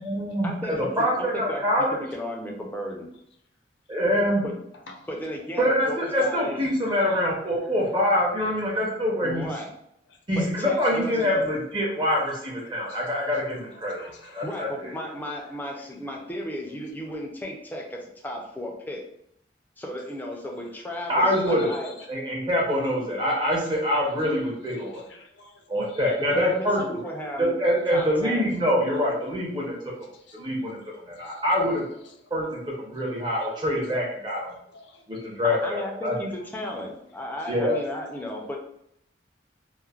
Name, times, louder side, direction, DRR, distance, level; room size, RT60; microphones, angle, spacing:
voice 1, 0.0-2.0 3.9-4.4 5.6-9.5 10.3-14.9 21.1-21.7 22.1-25.0 25.7-27.0 27.4-29.7 30.3-30.8 31.1-31.8 32.3-34.5 35.1-36.1 37.5-37.8, equal, 25° right, -3 dB, 0.7 m, -25 dB
voice 2, 1.0-3.1 4.4-4.6 5.1-6.6 9.2-9.7 10.4-11.4 14.4-19.0 19.8-22.0 26.2-27.6 27.9-28.5 35.4-38.6, left 1 dB, 10° left, -1 dB, 0.4 m, -34 dB
voice 3, 6.9-7.2 10.1-10.2 12.6-13.2 13.7-14.7 21.3-22.1 24.8-26.0 30.1-31.4 32.2-32.5 33.4-33.6 33.9-35.4, left 3 dB, 70° left, 3 dB, 0.5 m, -50 dB
3.1 x 2.0 x 2.3 m, 0.74 s
head